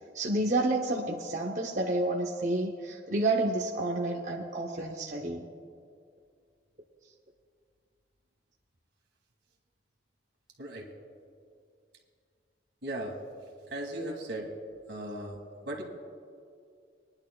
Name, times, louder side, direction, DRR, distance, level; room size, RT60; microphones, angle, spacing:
voice 1, 0.1-5.5, right 2 dB, 45° right, 1 dB, 0.6 m, -30 dB
voice 2, 10.6-10.9 12.8-13.2 13.7-14.5 14.9-15.4 15.7-15.8, right 1 dB, 80° right, 1 dB, 1.8 m, -37 dB
23.5 x 10.5 x 2.2 m, 2.3 s
head